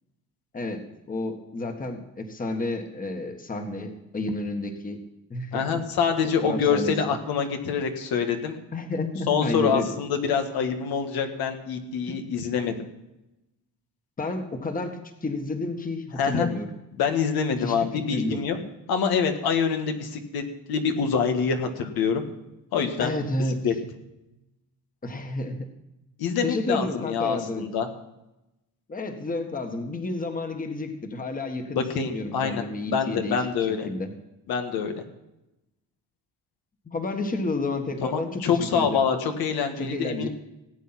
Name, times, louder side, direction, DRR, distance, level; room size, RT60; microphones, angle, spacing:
voice 1, 0.5-5.0 5.3-5.6 6.4-7.1 8.7-9.9 12.1-12.2 14.2-16.7 17.6-18.4 23.0-23.6 25.0-25.7 26.4-27.7 28.9-33.4 33.7-34.1 36.8-39.0 39.8-40.3, left 2 dB, 25° left, 5 dB, 1.6 m, -31 dB
voice 2, 5.5-8.6 9.3-12.8 16.2-16.5 17.0-18.6 18.9-20.4 20.7-22.2 22.7-23.2 23.6-23.7 26.2-27.9 31.7-33.9 34.5-34.9 38.0-40.3, left 6 dB, 80° left, 5 dB, 1.8 m, -25 dB
18.0 x 8.5 x 5.9 m, 0.94 s
cardioid pair, 130°, 36 cm